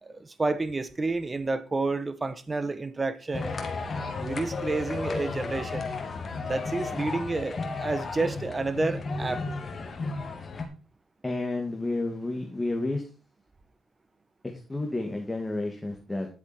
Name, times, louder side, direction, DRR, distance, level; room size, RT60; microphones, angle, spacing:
voice 1, 0.0-3.6 4.2-5.9 6.4-9.4, right 3 dB, 25° right, 1.2 m, -30 dB
sound 1, 3.3-10.6, left 3 dB, 40° left, 2.4 m, -33 dB
voice 2, 11.2-13.0 14.7-16.3, left 2 dB, 15° left, 2.2 m, -30 dB
11.0 x 8.0 x 4.5 m
cardioid pair, 90°, 0 cm